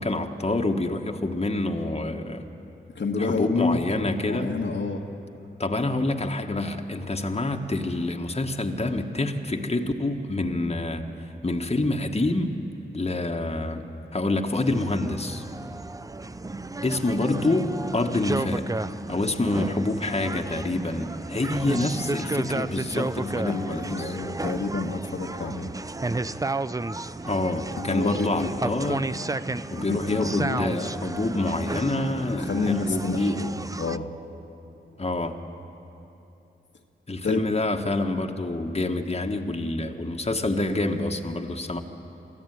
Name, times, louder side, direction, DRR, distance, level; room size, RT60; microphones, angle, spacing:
voice 1, 0.0-2.5 3.2-4.5 5.6-11.0 11.4-12.5 12.9-15.4 16.8-18.7 19.1-24.2 27.2-29.1 29.7-33.5 35.0-35.4 37.1-41.8, left 2 dB, 30° left, 3 dB, 1.6 m, -27 dB
voice 2, 2.9-3.8 4.3-5.0 23.4-25.7 27.8-28.6 29.8-30.6 32.4-34.1 37.2-37.4, left 4 dB, 65° left, 2 dB, 1.6 m, -28 dB
sound 1, 14.5-34.0, right 2 dB, 15° right, 0.5 m, -32 dB
24.0 x 14.0 x 9.4 m, 2.9 s
cardioid pair, 45°, 21 cm